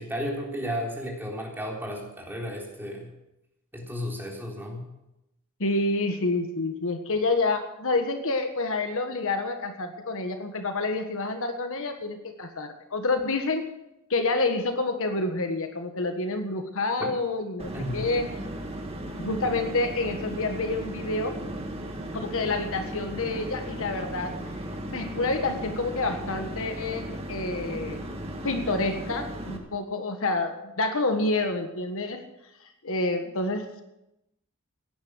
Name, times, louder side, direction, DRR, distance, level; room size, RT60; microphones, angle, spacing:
voice 1, 0.0-3.1 3.7-4.8 17.7-18.0, equal, 10° right, -2 dB, 3.8 m, -33 dB
voice 2, 5.6-13.7 14.1-18.3 19.2-21.4 22.1-24.3 24.9-28.0 28.4-32.2 32.8-33.7, left 2 dB, 65° left, 6 dB, 1.6 m, -28 dB
sound 1, 17.6-29.6, right 1 dB, 25° right, 1.9 m, -36 dB
16.5 x 10.5 x 6.4 m, 0.89 s
head